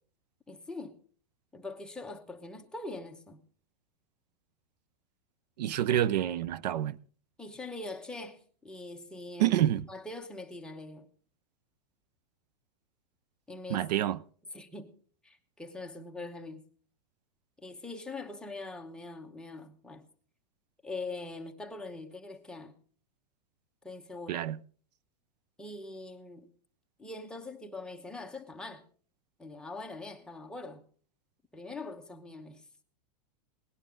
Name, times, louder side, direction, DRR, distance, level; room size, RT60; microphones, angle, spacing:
voice 1, 0.5-1.0 1.5-3.4 7.4-9.6 9.9-11.1 13.5-13.9 14.5-14.9 15.2-16.6 17.6-20.1 20.8-22.8 23.8-24.5 25.6-26.5 27.0-28.8 29.4-30.9 31.5-32.7, left 2 dB, 5° left, 0.9 m, -43 dB
voice 2, 5.6-7.0 9.4-9.9 13.7-14.2 24.3-24.6, right 12 dB, 80° right, 0.6 m, -27 dB
18.5 x 11.0 x 3.7 m
supercardioid pair, 150°, 21 cm